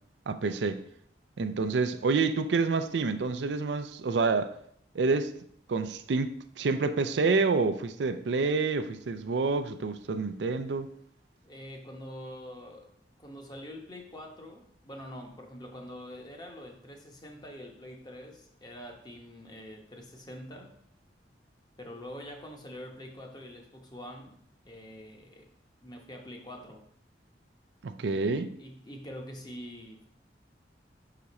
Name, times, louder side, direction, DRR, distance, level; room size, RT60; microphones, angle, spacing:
voice 1, 0.3-0.8 1.4-4.5 4.9-5.3 5.7-10.9 27.8-28.5, right 4 dB, 75° right, 0.4 m, -28 dB
voice 2, 11.4-12.9 13.2-20.7 21.8-24.3 24.6-25.5 25.8-26.8 28.2-28.3 28.6-30.1, equal, 25° left, 0.9 m, -45 dB
5.8 x 5.0 x 4.1 m
head